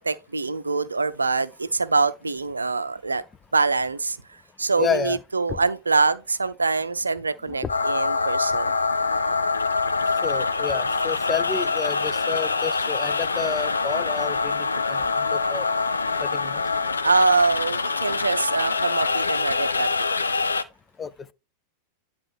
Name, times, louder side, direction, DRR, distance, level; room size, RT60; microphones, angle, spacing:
voice 1, 0.0-3.2 3.5-4.2 4.6-8.8 17.0-20.1, right 4 dB, 80° right, 0.5 m, -24 dB
voice 2, 4.8-5.2 5.5-5.6 10.2-15.0 15.3-15.7 16.2-16.6 21.0-21.1, left 6 dB, 20° left, 0.4 m, -30 dB
sound 1, 7.7-20.6, left 4 dB, 75° left, 0.6 m, -25 dB
9.9 x 3.6 x 4.4 m
figure-of-eight pair, 90°, 0 cm